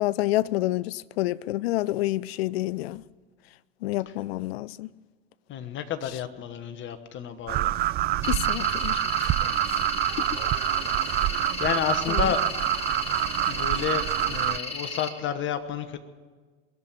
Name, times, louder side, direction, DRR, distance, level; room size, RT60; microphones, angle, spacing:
voice 1, 0.0-3.0 3.8-4.9 8.3-9.0 12.1-12.3, left 17 dB, 70° left, 0.5 m, -28 dB
voice 2, 5.5-7.7 11.2-12.4 13.5-16.0, left 9 dB, 35° left, 1.3 m, -31 dB
sound 1, 7.5-14.6, right 15 dB, 30° right, 0.4 m, -26 dB
sound 2, 8.2-15.1, left 3 dB, 20° left, 2.1 m, -35 dB
21.5 x 7.6 x 8.5 m
hypercardioid pair, 85°, 32 cm